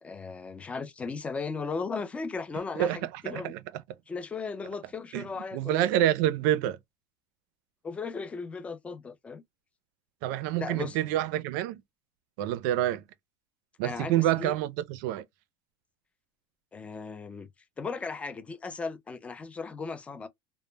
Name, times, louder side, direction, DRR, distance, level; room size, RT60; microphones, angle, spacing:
voice 1, 0.0-3.6 4.1-5.9 7.8-9.4 10.6-11.0 13.8-14.5 16.7-17.5 17.8-20.3, left 4 dB, 10° left, 0.3 m, -36 dB
voice 2, 3.3-3.6 5.1-5.2 5.5-6.8 10.2-11.8 12.4-13.0 13.8-15.2, right 12 dB, 65° right, 0.4 m, -27 dB
2.0 x 2.0 x 3.1 m
supercardioid pair, 155°, 12 cm